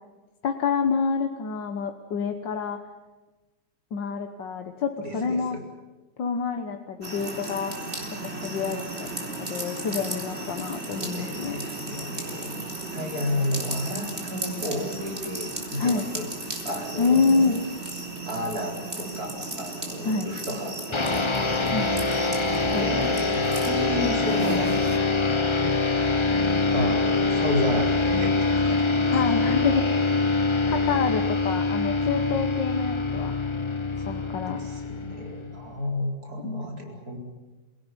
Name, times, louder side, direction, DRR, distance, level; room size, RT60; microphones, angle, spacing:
voice 1, 0.4-2.8 3.9-5.6 6.2-7.7 8.3-11.6 15.8-16.1 17.0-17.6 20.0-20.3 21.7-22.0 22.7-23.3 29.1-29.9 30.7-33.3 34.1-34.6 36.4-36.7, left 5 dB, 80° left, 6 dB, 2.0 m, -27 dB
voice 2, 5.0-5.6 10.9-12.6 12.9-16.3 16.6-17.6 18.3-21.3 22.8-24.8 26.7-29.4 34.0-37.2, left 1 dB, 55° right, 2 dB, 4.9 m, -32 dB
sound 1, 7.0-25.0, right 2 dB, 35° right, 4.2 m, -35 dB
sound 2, 20.9-35.7, left 3 dB, 20° left, 0.8 m, -24 dB
27.5 x 18.0 x 10.0 m, 1.2 s
omnidirectional pair, 1.9 m